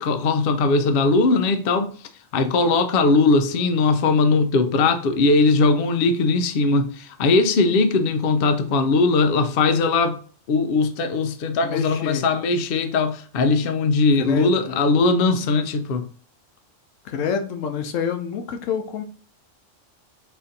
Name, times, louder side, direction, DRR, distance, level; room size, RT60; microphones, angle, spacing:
voice 1, 0.0-1.9 2.3-10.2 10.5-16.0, left 3 dB, 60° left, 0.7 m, -19 dB
voice 2, 11.6-12.2 14.2-14.8 17.0-19.0, left 6 dB, 85° left, 1.0 m, -27 dB
4.2 x 2.6 x 4.0 m
omnidirectional pair, 1.3 m